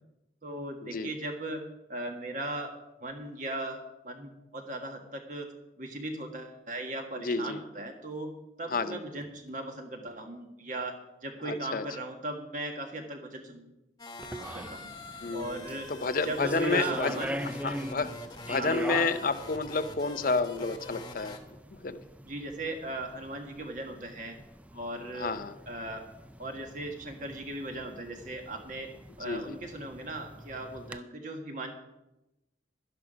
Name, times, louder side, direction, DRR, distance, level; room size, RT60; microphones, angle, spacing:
voice 1, 0.4-1.6 1.9-2.7 3.0-3.8 4.0-5.5 5.8-8.3 8.6-11.0 11.2-13.7 14.5-14.9 15.3-15.9 16.2-17.4 18.6-18.8 22.2-24.3 24.7-25.3 25.7-26.0 26.4-28.9 29.2-31.7, right 2 dB, 45° right, 4 dB, 1.7 m, -38 dB
voice 2, 7.2-7.6 8.7-9.0 11.4-11.8 15.2-17.2 17.6-18.1 18.5-21.4 21.8-22.0 25.1-25.5 29.2-29.6, left 4 dB, 50° left, 11 dB, 0.6 m, -30 dB
sound 1, 14.0-21.4, left 3 dB, 20° left, 1.3 m, -45 dB
sound 2, 14.2-31.0, right 1 dB, 10° right, 0.3 m, -42 dB
12.0 x 11.0 x 5.0 m, 0.94 s
head